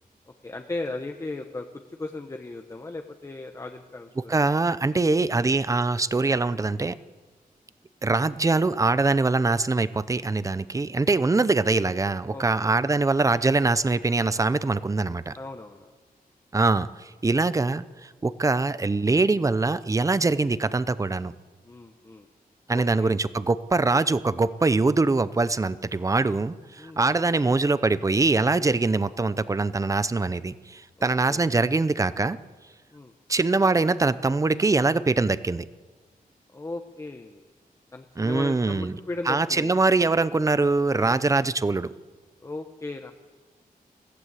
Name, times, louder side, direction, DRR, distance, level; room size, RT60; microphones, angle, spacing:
voice 1, 0.4-4.3 12.3-12.8 15.3-15.9 21.6-22.3 22.7-23.2 26.8-27.0 31.0-31.5 32.9-33.1 36.5-37.5 37.9-39.7 40.9-41.2 42.4-43.1, left 2 dB, 20° left, 5 dB, 1.0 m, -37 dB
voice 2, 4.2-7.0 8.0-15.4 16.5-21.3 22.7-32.4 33.3-35.7 38.2-38.9 39.3-41.9, right 3 dB, 20° right, 15 dB, 0.6 m, -23 dB
21.5 x 15.0 x 8.2 m, 1.4 s
wide cardioid pair, 145°, 15 cm